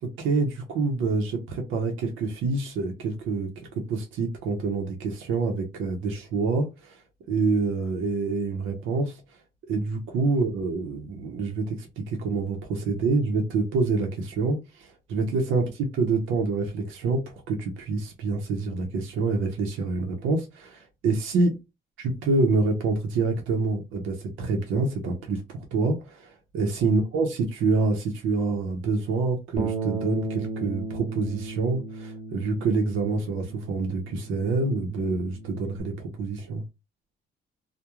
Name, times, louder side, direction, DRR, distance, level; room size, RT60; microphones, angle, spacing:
voice 1, 0.0-3.5 3.7-7.0 7.3-9.2 9.7-21.6 22.0-36.6, right 3 dB, 90° right, 0.7 m, -27 dB
Bass guitar, 29.6-35.8, right 3 dB, 40° right, 0.8 m, -35 dB
2.2 x 2.1 x 2.9 m
cardioid pair, 90°, 20 cm